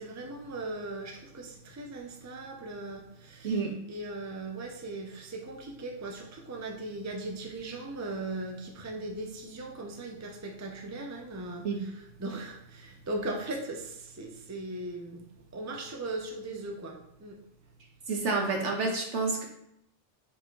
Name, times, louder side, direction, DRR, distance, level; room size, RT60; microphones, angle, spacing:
voice 1, 0.0-3.6 3.9-17.4, right 2 dB, 15° right, 2 dB, 0.6 m, -39 dB
voice 2, 18.1-19.5, right 4 dB, 70° right, 1 dB, 1.5 m, -29 dB
5.7 x 4.3 x 3.8 m, 0.79 s
omnidirectional pair, 1.2 m